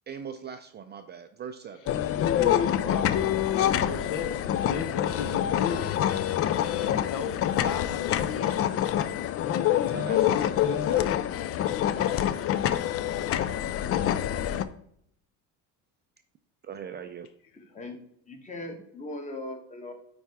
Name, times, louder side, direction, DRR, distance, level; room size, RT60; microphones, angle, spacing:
voice 1, 0.1-1.8 9.9-11.1 16.6-17.3, right 7 dB, 30° right, 8 dB, 0.4 m, -40 dB
sound 1, 1.9-14.6, left 11 dB, 40° left, 0.4 m, -26 dB
voice 2, 2.1-6.1 6.8-8.7, left 5 dB, 60° left, 8 dB, 0.9 m, -35 dB
voice 3, 18.3-19.9, left 2 dB, 20° left, 4 dB, 1.4 m, -39 dB
9.0 x 4.3 x 3.5 m, 0.69 s
cardioid pair, 135°, 36 cm